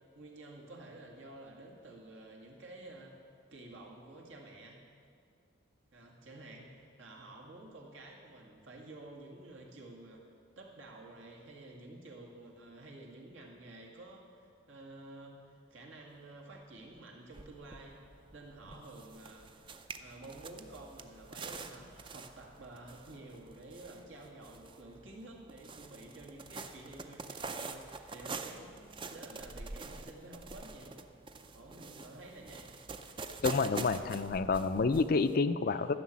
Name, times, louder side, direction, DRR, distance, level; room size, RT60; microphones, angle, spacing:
voice 1, 0.1-3.2 3.5-4.8 5.9-10.2 10.6-19.5 20.0-31.0 31.5-32.7 35.6-35.8, right 2 dB, 75° right, -1 dB, 2.1 m, -51 dB
sound 1, 16.9-17.0 17.3-35.4, right 4 dB, 25° right, 0.5 m, -46 dB
voice 2, 33.4-36.0, left 4 dB, 45° left, 11 dB, 0.4 m, -29 dB
13.5 x 6.7 x 8.6 m, 2.3 s
head